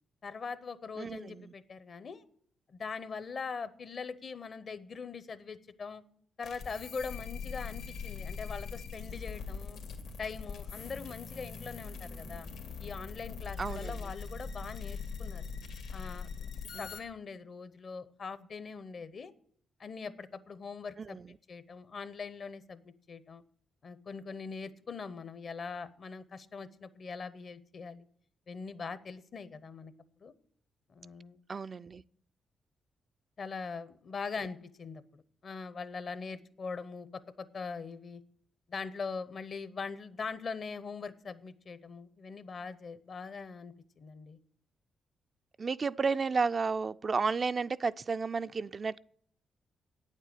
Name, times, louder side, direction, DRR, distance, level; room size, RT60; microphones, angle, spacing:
voice 1, 0.2-2.2 2.7-6.0 6.4-9.8 10.2-12.5 12.8-15.5 15.9-19.3 19.8-21.2 21.5-23.4 23.8-28.1 28.5-29.9 30.2-30.3 30.9-31.4 33.4-38.2 38.7-44.4, left 5 dB, 60° left, 0.8 m, -42 dB
voice 2, 1.0-1.5 13.6-14.0 16.7-16.9 21.0-21.3 31.5-32.0 45.6-49.0, right 4 dB, 50° right, 0.3 m, -32 dB
sound 1, 6.4-17.0, left 5 dB, 85° left, 1.6 m, -42 dB
8.9 x 7.5 x 8.3 m
supercardioid pair, 45°, 0 cm